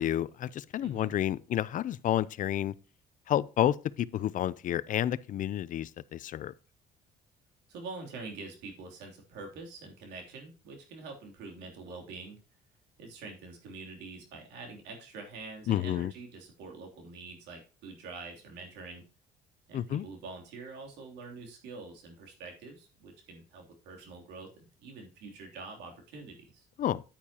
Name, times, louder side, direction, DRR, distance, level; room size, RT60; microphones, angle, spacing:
voice 1, 0.0-2.7 3.3-6.5 15.7-16.1 19.7-20.1 26.8-27.0, left 11 dB, 50° left, 0.5 m, -30 dB
voice 2, 0.8-1.1 7.7-12.4 13.0-19.0 19.7-26.7, right 3 dB, 90° right, 3.1 m, -45 dB
9.4 x 9.0 x 2.9 m
cardioid pair, 110°, 17 cm